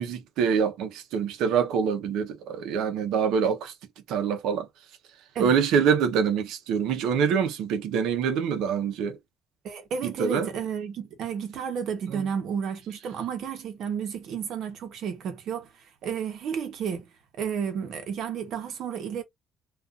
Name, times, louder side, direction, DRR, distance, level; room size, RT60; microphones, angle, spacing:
voice 1, 0.0-3.7 4.1-4.7 5.4-9.2 10.0-10.5 12.1-12.2, right 7 dB, 85° right, 0.6 m, -25 dB
voice 2, 9.6-15.7 16.0-19.2, right 7 dB, 65° right, 0.9 m, -32 dB
2.5 x 2.4 x 2.4 m
cardioid pair, 140°, 0 cm